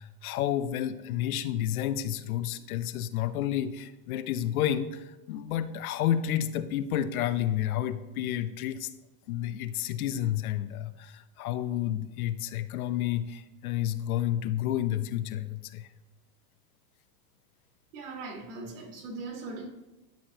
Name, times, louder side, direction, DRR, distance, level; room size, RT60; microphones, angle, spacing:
voice 1, 0.0-8.9 9.3-15.9, left 11 dB, 60° left, 13 dB, 0.6 m, -30 dB
voice 2, 17.9-19.7, right 3 dB, 45° right, 1 dB, 2.0 m, -39 dB
11.5 x 7.1 x 2.9 m, 1.0 s
supercardioid pair, 165°, 49 cm